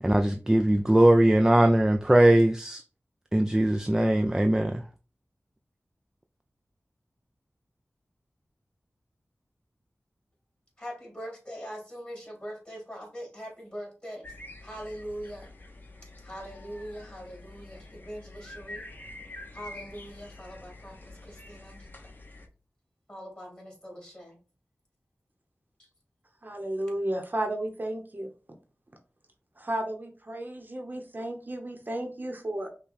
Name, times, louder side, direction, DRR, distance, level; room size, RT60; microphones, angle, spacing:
voice 1, 0.0-2.8 3.3-4.8, right 1 dB, 10° right, 0.3 m, -21 dB
voice 2, 10.8-14.3 14.6-15.5 16.2-18.8 19.5-21.9 23.1-24.4 25.8-25.9, equal, 25° left, 2.5 m, -42 dB
sound 1, 14.2-22.5, left 2 dB, 40° left, 0.9 m, -47 dB
voice 3, 26.4-28.3 29.6-32.7, right 1 dB, 40° right, 0.8 m, -33 dB
5.6 x 2.2 x 4.0 m
wide cardioid pair, 70°, 5 cm